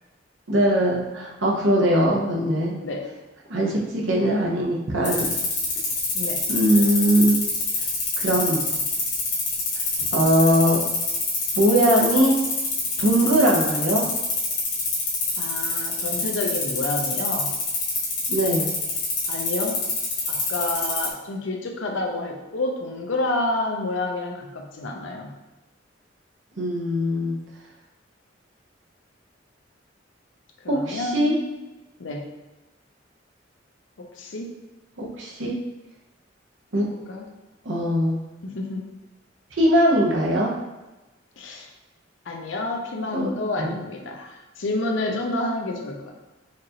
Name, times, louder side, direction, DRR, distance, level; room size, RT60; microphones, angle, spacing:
voice 1, 0.5-2.7 3.5-5.3 6.5-7.4 8.2-8.6 10.1-10.8 11.5-12.4 13.0-14.1 18.3-18.7 26.6-27.4 30.7-31.3 35.0-35.6 36.7-36.9 37.6-38.2 39.6-40.5 43.1-43.3 43.6-43.8, equal, 80° right, -3 dB, 0.9 m, -21 dB
sound 1, 5.0-21.1, left 4 dB, 60° left, 1.3 m, -26 dB
voice 2, 15.4-17.5 19.3-19.8 20.3-25.3 30.6-31.5 32.0-32.3 34.0-34.5 36.9-37.3 38.4-38.8 41.4-41.7 42.3-46.1, left 2 dB, 80° left, 1 dB, 0.6 m, -29 dB
4.4 x 2.5 x 2.9 m, 1.1 s
head